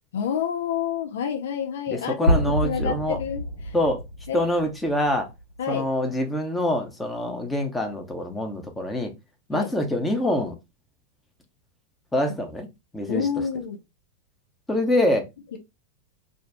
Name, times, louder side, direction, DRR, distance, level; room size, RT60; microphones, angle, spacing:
voice 1, 0.1-3.7 4.3-4.6 5.6-5.9 9.5-9.7 13.1-13.8 15.5-15.6, left 8 dB, 60° left, 0.4 m, -29 dB
voice 2, 1.9-3.2 3.7-4.0 4.3-5.3 5.7-9.1 9.5-10.5 12.1-12.7 12.9-13.3 14.7-15.3, left 1 dB, 10° left, 0.7 m, -25 dB
sound 1, 2.3-6.2, equal, 80° left, 1.1 m, -28 dB
2.6 x 2.2 x 3.4 m
figure-of-eight pair, 90°, 0 cm